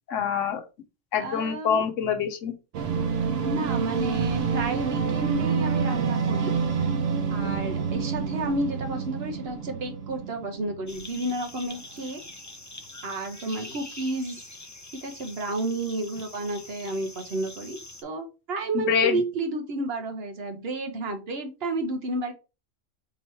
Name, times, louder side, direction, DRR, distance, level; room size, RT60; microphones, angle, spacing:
voice 1, 0.1-0.6 1.1-2.5 18.7-19.2, left 8 dB, 80° left, 1.1 m, -25 dB
voice 2, 1.2-1.8 3.4-6.5 7.3-12.2 13.0-14.5 15.0-22.3, right 2 dB, 55° right, 1.1 m, -31 dB
sound 1, 2.7-11.3, right 6 dB, 85° right, 1.1 m, -28 dB
sound 2, 10.9-18.0, left 2 dB, 25° left, 0.3 m, -44 dB
3.9 x 3.0 x 4.4 m
omnidirectional pair, 1.3 m